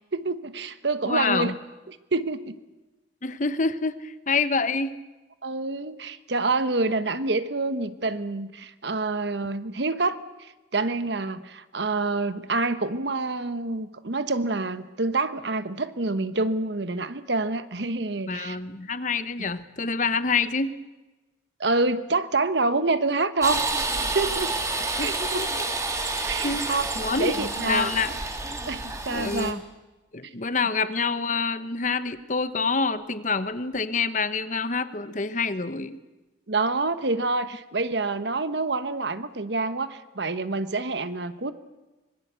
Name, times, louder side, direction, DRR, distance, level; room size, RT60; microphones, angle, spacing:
voice 1, 0.1-1.5 1.9-2.5 5.4-18.6 21.6-23.6 24.1-24.5 25.0-25.4 26.3-26.9 27.2-27.9 28.7-29.6 30.2-30.3 36.5-41.5, right 3 dB, 65° right, 12 dB, 1.2 m, -27 dB
voice 2, 1.0-1.5 3.2-5.0 18.3-20.7 25.0-25.5 26.1-28.2 29.1-29.6 30.1-36.0, left 4 dB, 40° left, 12 dB, 1.1 m, -27 dB
sound 1, 23.4-29.5, right 3 dB, 15° right, 2.1 m, -29 dB
25.0 x 22.0 x 8.2 m, 1.1 s
head